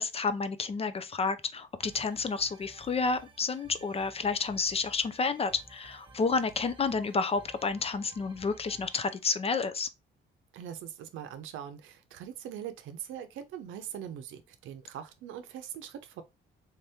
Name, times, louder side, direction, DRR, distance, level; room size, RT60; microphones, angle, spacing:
voice 1, 0.0-9.9, left 4 dB, 30° left, 0.4 m, -30 dB
sound 1, 1.8-9.2, right 2 dB, 25° right, 1.1 m, -55 dB
voice 2, 10.5-16.2, right 9 dB, 85° right, 0.6 m, -42 dB
3.5 x 2.8 x 3.4 m
cardioid pair, 90°, 20 cm